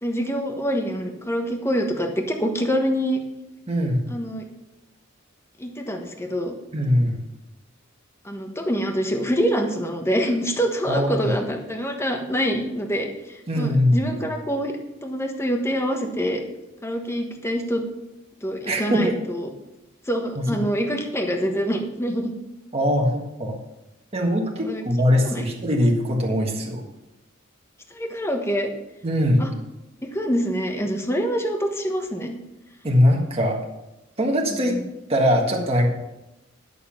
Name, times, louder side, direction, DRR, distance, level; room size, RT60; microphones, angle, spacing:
voice 1, 0.0-3.2 4.1-4.4 5.6-6.5 8.2-13.1 13.5-14.7 15.0-16.4 16.8-17.8 18.4-19.5 20.1-22.3 24.6-24.8 25.3-25.4 27.9-28.7 29.4-29.5 30.0-32.4 34.5-34.8, equal, 15° left, 3 dB, 1.3 m, -25 dB
voice 2, 3.7-4.1 6.7-7.2 10.9-11.3 13.5-14.2 18.6-19.2 20.3-20.6 22.7-23.6 24.1-26.8 29.0-29.4 32.8-33.6 34.2-34.8 35.1-35.9, equal, 30° right, 0 dB, 1.6 m, -21 dB
11.0 x 6.9 x 5.7 m, 0.93 s
head